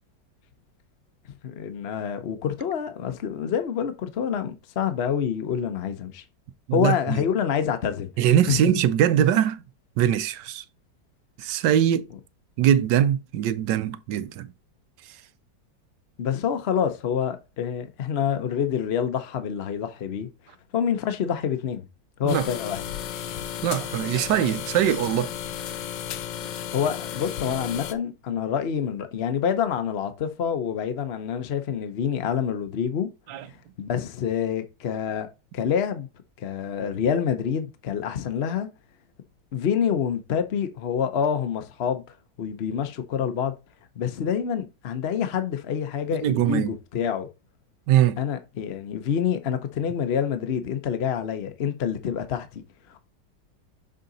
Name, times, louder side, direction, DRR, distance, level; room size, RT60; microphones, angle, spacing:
voice 1, 1.4-6.2 6.7-8.1 8.5-8.7 16.2-20.3 20.7-21.8 22.2-22.8 26.7-33.1 33.8-35.3 35.5-36.1 36.4-38.7 39.5-42.0 42.4-43.5 44.0-47.3 48.2-52.6, left 8 dB, 50° left, 0.8 m, -27 dB
voice 2, 6.7-7.2 8.2-9.6 10.0-10.6 11.4-12.1 12.6-14.5 22.2-22.5 23.6-25.3 33.3-33.4 46.2-46.7 47.9-48.2, right 10 dB, 80° right, 1.2 m, -22 dB
sound 1, 22.3-27.9, left 10 dB, 80° left, 1.3 m, -34 dB
6.5 x 3.8 x 4.0 m
omnidirectional pair, 1.9 m